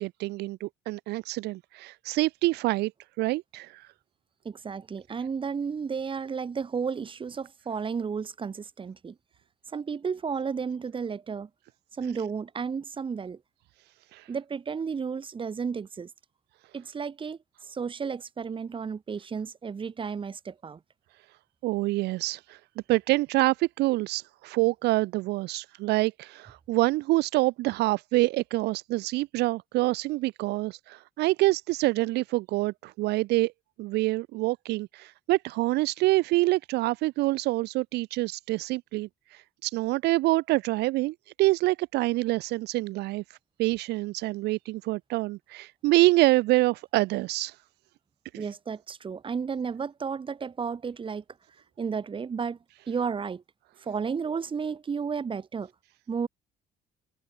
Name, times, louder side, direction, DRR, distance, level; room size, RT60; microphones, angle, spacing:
voice 1, 0.0-2.9 3.2-3.9 14.1-14.3 21.6-22.6 22.9-33.5 33.8-43.2 43.6-47.6 48.3-48.5, right 19 dB, 75° right, 0.5 m, -26 dB
voice 2, 4.5-9.2 9.7-11.5 12.0-13.4 14.3-16.1 16.7-20.8 48.4-51.2 51.8-52.6 52.9-53.4 53.8-55.7 56.1-56.3, right 6 dB, 30° right, 1.8 m, -33 dB
cardioid pair, 110°, 17 cm